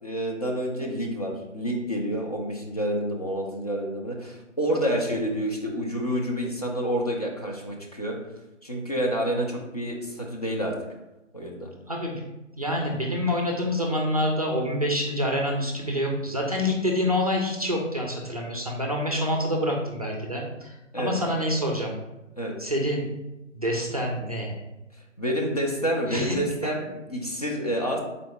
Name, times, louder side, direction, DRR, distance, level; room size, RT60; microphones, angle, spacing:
voice 1, 0.0-8.2 8.6-10.7 11.3-11.7 20.9-21.2 22.4-22.5 25.2-28.0, equal, 30° left, -1 dB, 0.5 m, -28 dB
voice 2, 11.9-12.2 12.6-22.0 22.6-23.1 23.5-24.6 26.1-26.4 26.6-26.7, equal, 30° right, 0 dB, 0.5 m, -27 dB
4.0 x 3.3 x 3.3 m, 1.0 s
figure-of-eight pair, 145°, 38 cm